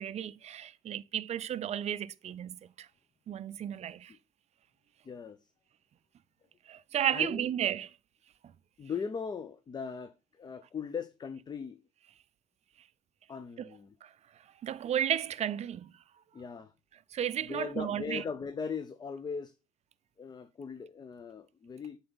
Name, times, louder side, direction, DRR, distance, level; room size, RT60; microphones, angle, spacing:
voice 1, 0.0-2.9 3.3-4.1 6.7-7.9 13.6-13.7 14.0-14.1 14.6-15.9 17.1-18.2, right 10 dB, 40° right, 0.4 m, -33 dB
voice 2, 5.0-5.5 7.1-7.5 8.8-11.8 13.3-14.0 16.3-16.7 17.4-19.5 20.2-22.0, left 6 dB, 25° left, 0.4 m, -39 dB
7.8 x 4.0 x 3.8 m
cardioid pair, 110°, 17 cm